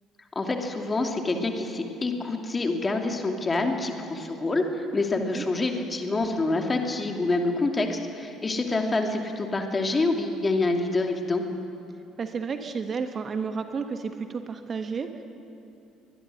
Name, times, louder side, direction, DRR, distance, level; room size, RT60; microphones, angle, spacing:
voice 1, 0.3-11.4, left 2 dB, 25° left, 3 dB, 2.7 m, -27 dB
voice 2, 12.2-15.2, right 5 dB, 35° right, 8 dB, 1.4 m, -31 dB
23.5 x 21.0 x 6.4 m, 2.6 s
figure-of-eight pair, 55°, 0 cm